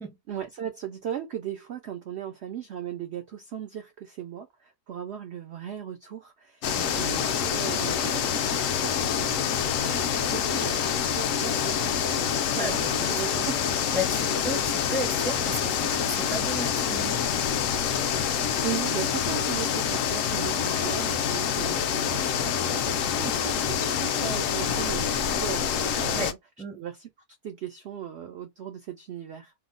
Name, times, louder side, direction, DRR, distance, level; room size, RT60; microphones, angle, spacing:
voice 1, 0.3-12.2 12.5-13.7 18.2-26.4 26.8-27.1 27.4-29.5, right 9 dB, 75° right, 0.6 m, -37 dB
sound 1, 6.6-26.3, left 8 dB, 70° left, 0.8 m, -26 dB
voice 2, 12.5-13.1 13.9-17.2 26.1-26.3 26.6-26.8, equal, 5° left, 0.4 m, -34 dB
2.9 x 2.0 x 3.7 m
omnidirectional pair, 1.7 m